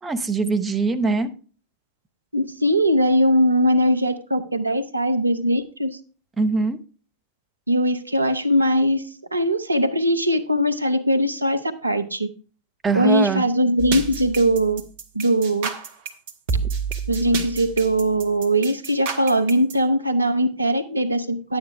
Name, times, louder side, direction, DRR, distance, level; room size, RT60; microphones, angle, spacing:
voice 1, 0.0-1.3 6.4-6.8 12.8-13.4, right 4 dB, 15° right, 6 dB, 0.9 m, -22 dB
voice 2, 2.3-5.9 7.7-12.3 12.9-14.8 15.1-15.7 17.1-21.6, equal, 85° right, 9 dB, 0.7 m, -20 dB
sound 1, 13.8-19.7, right 5 dB, 55° right, 1.4 m, -29 dB
10.5 x 8.8 x 3.3 m, 0.38 s
figure-of-eight pair, 90°, 0 cm